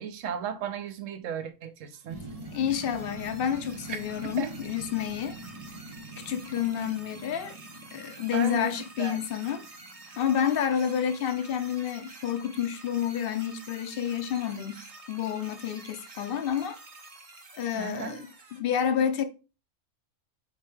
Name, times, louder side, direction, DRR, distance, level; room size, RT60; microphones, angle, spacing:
voice 1, 0.0-2.2 3.9-4.0 4.4-4.5 8.3-9.2 17.7-18.2, right 8 dB, 75° right, 1.0 m, -35 dB
sound 1, 1.9-18.6, right 2 dB, 35° right, 0.7 m, -49 dB
sound 2, 2.1-10.6 10.9-11.0, right 2 dB, 55° right, 0.3 m, -45 dB
voice 2, 2.5-5.4 6.3-7.6 7.9-9.7 10.2-16.8 17.5-19.2, left 9 dB, 60° left, 0.6 m, -29 dB
4.3 x 3.7 x 3.2 m
omnidirectional pair, 1.4 m